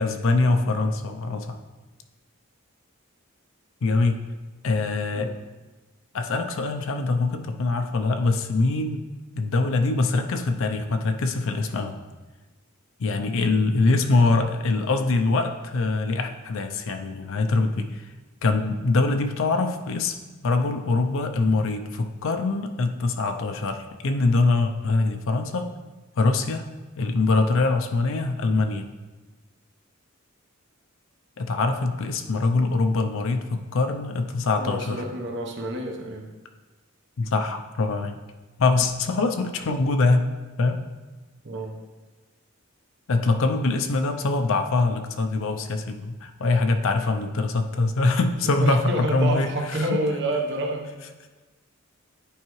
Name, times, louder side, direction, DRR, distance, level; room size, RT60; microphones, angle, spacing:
voice 1, 0.0-1.6 3.8-4.2 4.6-5.3 6.1-9.1 9.4-12.0 13.0-18.0 18.4-20.2 20.4-25.7 26.2-26.7 27.0-28.9 31.4-35.0 37.2-38.2 38.6-40.2 40.6-40.8 43.1-49.8, left 3 dB, 65° left, 6 dB, 0.5 m, -23 dB
voice 2, 34.6-36.3 41.4-41.8 48.6-50.9, right 1 dB, 60° right, 2 dB, 1.0 m, -28 dB
10.0 x 4.6 x 3.1 m, 1.2 s
head